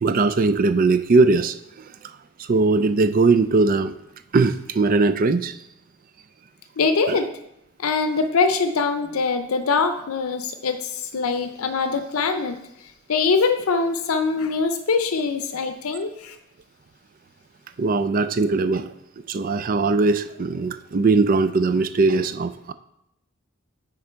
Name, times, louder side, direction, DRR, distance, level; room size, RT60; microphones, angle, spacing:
voice 1, 0.0-1.5 2.5-3.9 4.3-5.5 7.1-7.2 17.8-18.9 19.3-22.7, right 3 dB, 40° right, 12 dB, 0.4 m, -20 dB
voice 2, 6.8-7.3 7.8-12.6 13.1-16.3, left 4 dB, 85° left, 8 dB, 0.6 m, -23 dB
9.6 x 3.8 x 4.4 m, 0.81 s
head